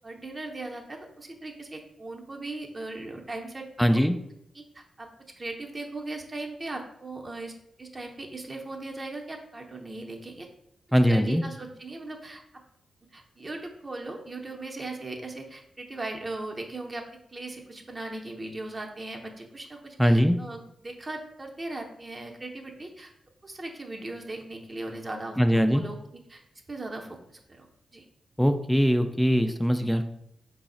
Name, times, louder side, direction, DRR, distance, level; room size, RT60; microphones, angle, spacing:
voice 1, 0.0-4.0 4.5-5.1 5.4-7.5 7.8-10.5 11.1-12.4 13.1-17.0 17.3-23.1 23.4-26.0 26.3-26.4 26.7-27.7 27.9-28.0, right 2 dB, 35° right, 2 dB, 0.6 m, -38 dB
voice 2, 3.8-4.2 10.9-11.4 20.0-20.4 25.4-25.8 28.4-30.0, equal, ahead, 7 dB, 0.3 m, -21 dB
3.9 x 2.0 x 3.7 m, 0.76 s
supercardioid pair, 45°, 0 cm